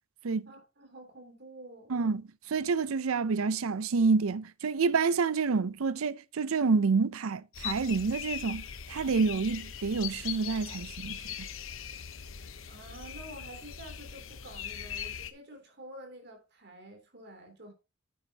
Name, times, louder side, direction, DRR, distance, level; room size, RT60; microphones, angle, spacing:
voice 1, 0.4-1.9 12.7-17.7, right 1 dB, 50° right, 3.1 m, -49 dB
voice 2, 1.9-2.2 2.5-11.5, right 4 dB, 75° right, 0.5 m, -28 dB
sound 1, 7.5-15.3, left 8 dB, 65° left, 0.8 m, -40 dB
9.4 x 9.2 x 2.8 m
head